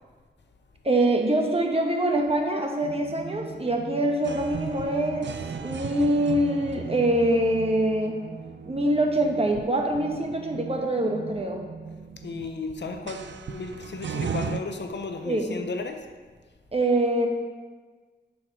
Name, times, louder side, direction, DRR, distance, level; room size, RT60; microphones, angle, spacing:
voice 1, 0.8-5.3 5.6-8.1 8.6-11.6 15.2-15.5 16.7-17.3, right 1 dB, 35° right, 2 dB, 1.1 m, -24 dB
sound 1, 2.8-14.6, right 6 dB, 80° right, 0.4 m, -37 dB
voice 2, 12.2-16.1, left 3 dB, 75° left, 5 dB, 0.7 m, -34 dB
7.2 x 4.9 x 6.2 m, 1.4 s
wide cardioid pair, 95°, 18 cm